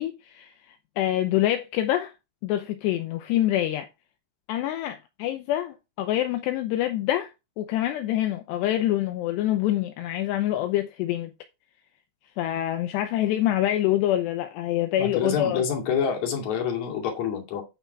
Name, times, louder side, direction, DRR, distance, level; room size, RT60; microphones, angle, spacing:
voice 1, 0.0-2.1 2.4-3.9 4.5-7.3 7.6-11.3 12.4-15.6, left 13 dB, 80° left, 2.5 m, -26 dB
voice 2, 15.0-17.6, left 7 dB, 45° left, 3.0 m, -27 dB
9.7 x 5.8 x 4.5 m
omnidirectional pair, 5.7 m